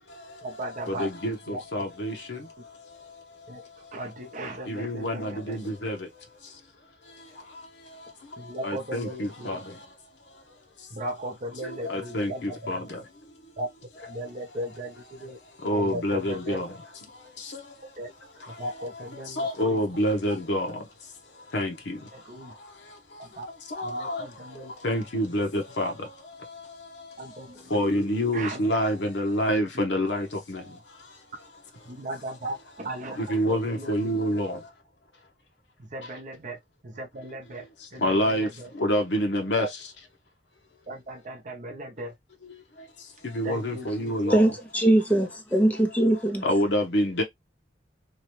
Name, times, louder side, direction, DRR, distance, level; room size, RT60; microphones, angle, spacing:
voice 1, 0.4-1.1 1.5-1.8 3.5-3.7 3.9-5.6 8.4-9.6 10.9-12.6 13.6-13.7 14.1-15.4 15.7-16.6 18.0-18.1 18.6-19.8 22.1-22.5 23.2-23.5 23.8-24.7 27.2-28.0 28.3-28.7 31.9-34.2 35.8-38.7 39.6-39.7 40.9-42.1 43.4-44.3 46.0-46.1, right 1 dB, 45° right, 0.7 m, -37 dB
voice 2, 1.0-1.3 1.7-2.1 4.8-5.6 5.8-5.9 8.6-9.1 9.5-9.6 11.9-12.3 12.7-12.8 15.6-16.6 19.4-20.7 21.5-21.9 23.8-24.2 24.8-25.5 25.8-25.9 27.7-30.2 33.3-34.5 38.0-38.5 38.8-39.6 43.4-44.4 46.4-47.2, equal, 75° left, 0.8 m, -26 dB
voice 3, 44.3-46.4, right 1 dB, 10° left, 0.6 m, -21 dB
2.9 x 2.2 x 2.9 m
head